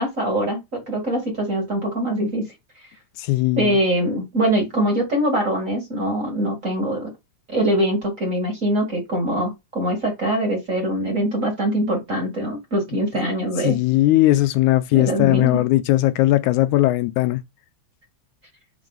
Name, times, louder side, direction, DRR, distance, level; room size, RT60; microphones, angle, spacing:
voice 1, 0.0-2.5 3.6-7.1 7.5-13.8 14.9-15.6, right 1 dB, 30° right, 1.8 m, -23 dB
voice 2, 3.2-3.8 13.6-17.4, left 16 dB, 80° left, 1.9 m, -18 dB
5.9 x 4.8 x 3.9 m
omnidirectional pair, 3.5 m